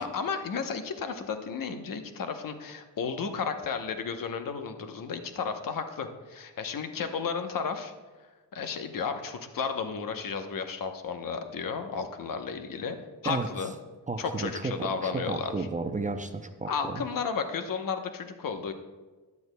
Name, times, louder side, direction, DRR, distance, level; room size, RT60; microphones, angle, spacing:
voice 1, 0.0-7.9 8.5-13.0 13.2-13.7 14.2-15.7 16.7-18.7, left 5 dB, 60° left, 7 dB, 0.9 m, -33 dB
voice 2, 14.1-17.0, right 3 dB, 20° right, 7 dB, 0.5 m, -33 dB
13.0 x 9.5 x 2.2 m, 1.3 s
cardioid pair, 90°, 38 cm